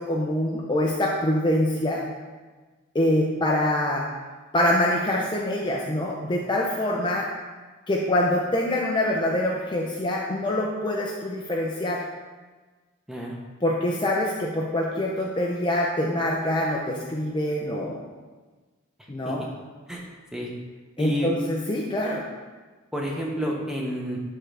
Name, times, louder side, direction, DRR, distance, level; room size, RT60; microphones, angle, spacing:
voice 1, 0.0-2.0 2.9-4.1 4.5-7.3 7.9-12.0 13.6-18.0 19.1-19.5 21.0-22.3, left 1 dB, 20° left, -2 dB, 0.5 m, -25 dB
voice 2, 21.0-21.3 22.9-24.2, equal, 5° right, -2 dB, 0.9 m, -29 dB
11.5 x 3.8 x 3.3 m, 1.3 s
head